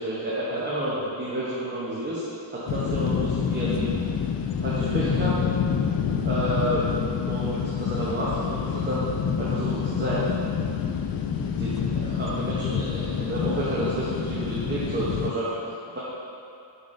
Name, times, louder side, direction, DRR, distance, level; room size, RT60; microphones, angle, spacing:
voice 1, 0.0-2.2 2.5-3.9 4.6-5.4 6.2-6.9 7.2-9.1 9.4-10.3 11.4-16.0, right 1 dB, 25° right, -9 dB, 1.0 m, -30 dB
sound 1, 2.7-15.3, left 7 dB, 55° left, 0.5 m, -27 dB
6.8 x 5.8 x 2.7 m, 2.7 s
wide cardioid pair, 120°, 44 cm